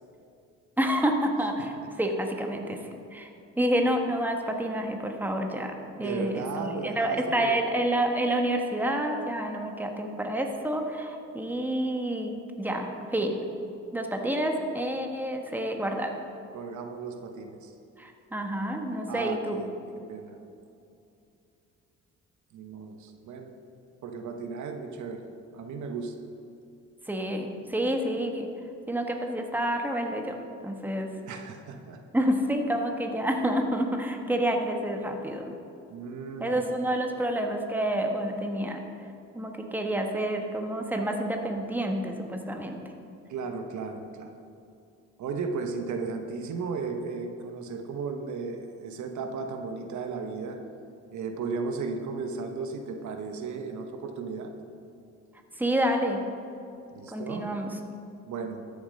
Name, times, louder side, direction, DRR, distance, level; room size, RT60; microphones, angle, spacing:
voice 1, 0.8-2.8 3.1-3.3 3.6-13.4 13.9-16.2 18.0-19.6 27.1-28.5 28.9-30.4 30.6-31.1 32.1-35.5 36.4-38.8 39.3-42.8 55.6-56.2 57.1-57.7, right 1 dB, 5° right, 3 dB, 1.3 m, -28 dB
voice 2, 6.0-7.6 16.5-17.7 19.1-19.7 20.1-20.4 22.5-23.5 24.0-25.2 25.5-26.2 31.3-32.0 35.9-36.6 43.3-44.3 45.2-50.6 51.1-54.5 56.9-57.5 58.3-58.6, right 4 dB, 70° right, 5 dB, 1.1 m, -35 dB
13.5 x 7.2 x 5.3 m, 2.6 s
cardioid pair, 90°, 30 cm